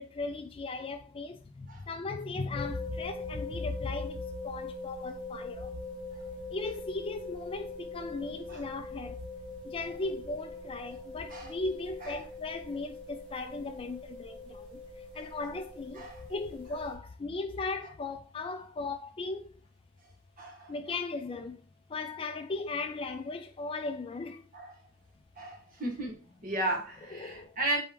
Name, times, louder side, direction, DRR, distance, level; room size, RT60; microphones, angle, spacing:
voice 1, 0.0-5.8 6.5-9.2 9.6-14.8 15.1-19.5 20.7-21.6 21.9-24.5 27.1-27.5, left 3 dB, 25° left, 0.3 m, -37 dB
sound 1, 2.5-16.9, left 2 dB, 90° right, 2.0 m, -43 dB
voice 2, 20.4-20.7 24.5-24.7 25.4-26.1 26.4-27.8, right 1 dB, 40° right, 1.3 m, -35 dB
4.5 x 3.1 x 3.3 m
head